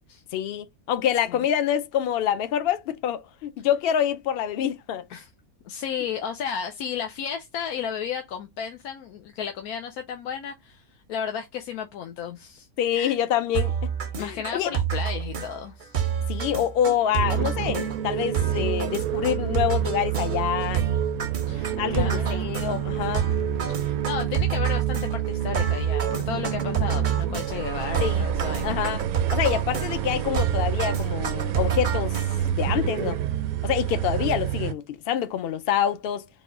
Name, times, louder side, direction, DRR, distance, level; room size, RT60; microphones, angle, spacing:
voice 1, 0.3-5.0 12.8-13.9 14.2-14.7 16.3-20.8 21.8-23.2 28.0-28.3 28.6-29.0 29.3-32.2 32.5-33.2 33.6-36.3, left 10 dB, 70° left, 0.5 m, -26 dB
voice 2, 5.7-12.7 12.9-13.1 14.2-16.0 21.5-22.5 23.7-28.8, left 7 dB, 85° left, 1.1 m, -33 dB
sound 1, 13.5-32.6, right 8 dB, 50° right, 0.6 m, -28 dB
sound 2, 17.1-34.7, right 10 dB, 80° right, 1.0 m, -29 dB
4.1 x 2.2 x 3.6 m
omnidirectional pair, 1.5 m